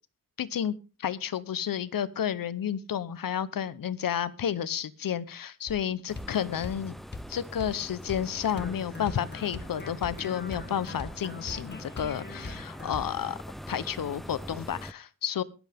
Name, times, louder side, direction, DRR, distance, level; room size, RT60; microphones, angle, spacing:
voice 1, 0.4-0.7 1.0-7.0 7.3-13.4 13.7-15.4, left 9 dB, 85° left, 16 dB, 0.9 m, -31 dB
sound 1, 5.7-5.8 6.2-6.3 6.6-6.8 7.1-7.3 7.6-7.8 8.1-8.3 8.6-13.2, left 2 dB, 30° left, 1.7 m, -41 dB
sound 2, 6.1-14.9, equal, ahead, 0.6 m, -43 dB
22.0 x 8.1 x 3.5 m, 0.32 s
cardioid pair, 70°, 33 cm